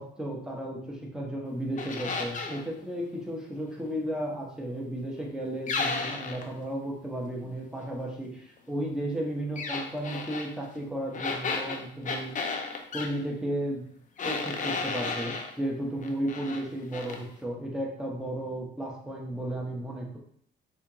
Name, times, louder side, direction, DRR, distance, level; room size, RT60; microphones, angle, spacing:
voice 1, 0.0-12.3 12.9-13.9 14.2-20.2, right 1 dB, 5° right, -2 dB, 0.9 m, -34 dB
sound 1, 1.8-2.6 5.7-6.5 9.6-10.5 11.1-13.1 14.2-15.5 16.0-16.6 16.9-17.2, left 4 dB, 40° left, 0.5 m, -33 dB
4.2 x 2.5 x 2.9 m, 0.64 s
cardioid pair, 90°, 20 cm